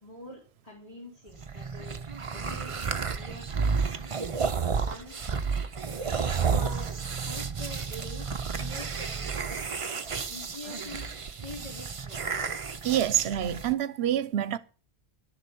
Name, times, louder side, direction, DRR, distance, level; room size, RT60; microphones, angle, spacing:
voice 1, 0.0-2.0 2.3-2.8 3.1-4.0 4.8-5.3 6.4-11.1 11.4-12.6, left 1 dB, 35° left, 3.6 m, -45 dB
Monster Groans Grunts Slobbers, 1.3-13.7, right 5 dB, 35° right, 0.7 m, -31 dB
voice 2, 12.8-14.6, right 11 dB, 75° right, 1.0 m, -26 dB
11.5 x 7.5 x 7.1 m
omnidirectional pair, 1.1 m